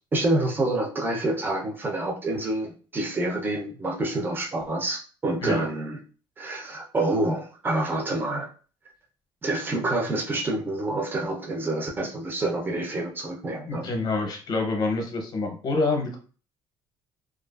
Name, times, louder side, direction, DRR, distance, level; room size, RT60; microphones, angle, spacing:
voice 1, 0.1-6.0 6.4-8.5 9.4-13.9, right 2 dB, 20° right, 0 dB, 0.6 m, -27 dB
voice 2, 13.7-16.2, left 3 dB, 45° left, 3 dB, 0.7 m, -27 dB
2.4 x 2.3 x 2.3 m, 0.39 s
cardioid pair, 110°, 10 cm